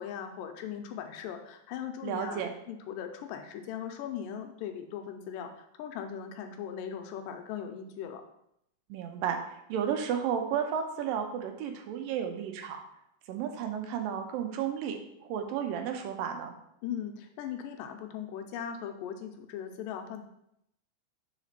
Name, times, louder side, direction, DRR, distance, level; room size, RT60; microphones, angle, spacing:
voice 1, 0.0-8.2 16.8-20.2, left 8 dB, 80° left, 5 dB, 2.0 m, -39 dB
voice 2, 2.0-2.5 8.9-12.8 13.3-15.0 15.3-16.6, right 8 dB, 80° right, 4 dB, 2.3 m, -32 dB
5.0 x 4.9 x 5.5 m, 0.77 s
omnidirectional pair, 4.2 m